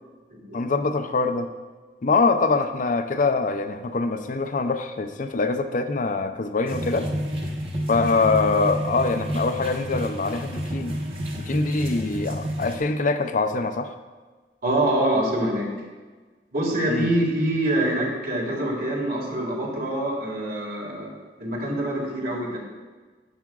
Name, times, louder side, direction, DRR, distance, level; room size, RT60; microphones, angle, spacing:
voice 1, 0.5-1.5 2.0-7.1 7.9-10.9 11.4-13.9 16.9-17.1, left 3 dB, 45° left, 9 dB, 0.5 m, -24 dB
sound 1, 6.7-12.8, equal, 35° right, 1.1 m, -30 dB
voice 2, 14.6-15.7 16.5-21.1 21.4-22.6, right 1 dB, 55° right, -1 dB, 1.9 m, -25 dB
10.5 x 8.3 x 2.4 m, 1.4 s
head